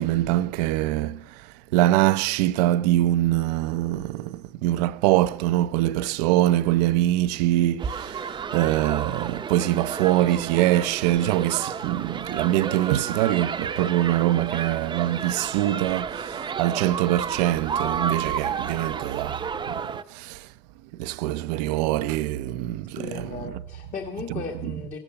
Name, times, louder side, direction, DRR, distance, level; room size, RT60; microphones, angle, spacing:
voice 1, 0.0-1.4 1.7-19.4 19.6-19.8 20.1-20.5 21.0-23.3, right 15 dB, 75° right, 0.7 m, -23 dB
sound 1, 7.8-20.0, right 6 dB, 20° right, 0.8 m, -32 dB
voice 2, 23.0-25.0, left 5 dB, 35° left, 1.6 m, -36 dB
15.5 x 12.0 x 6.9 m
supercardioid pair, 110°, 21 cm